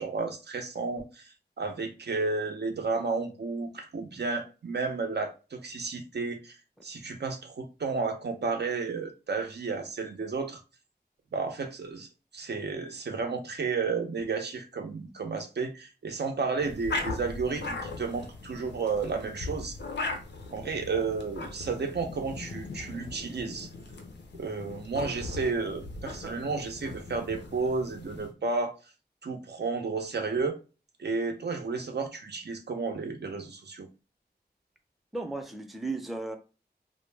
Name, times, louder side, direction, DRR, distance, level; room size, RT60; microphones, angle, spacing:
voice 1, 0.0-6.6 6.8-10.6 11.3-12.1 12.3-19.8 20.5-23.7 24.4-28.7 29.2-30.6 31.0-33.9, right 4 dB, 75° right, 0.5 m, -32 dB
sound 1, 16.6-28.3, left 3 dB, 90° left, 0.5 m, -39 dB
voice 2, 35.1-36.4, right 2 dB, ahead, 0.4 m, -35 dB
2.1 x 2.0 x 3.2 m
wide cardioid pair, 65°, 18 cm